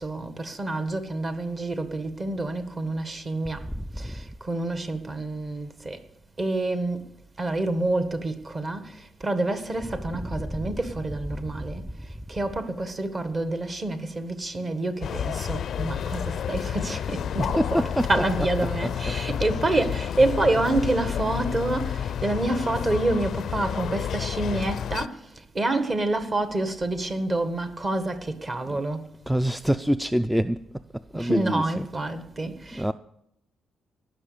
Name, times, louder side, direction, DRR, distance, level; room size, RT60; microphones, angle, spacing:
voice 1, 0.0-3.6 4.0-6.0 6.4-7.0 7.4-11.8 12.3-17.8 18.1-25.2 25.5-29.1 31.1-32.9, right 2 dB, 35° right, 1.6 m, -28 dB
voice 2, 3.6-4.1 9.9-10.7 11.1-11.8 17.4-19.2 28.7-28.8 29.3-30.6 30.9-31.9 32.7-32.9, equal, 5° right, 0.4 m, -27 dB
sound 1, 15.0-25.1, left 9 dB, 60° left, 0.4 m, -30 dB
18.5 x 6.4 x 6.8 m
cardioid pair, 90°, 0 cm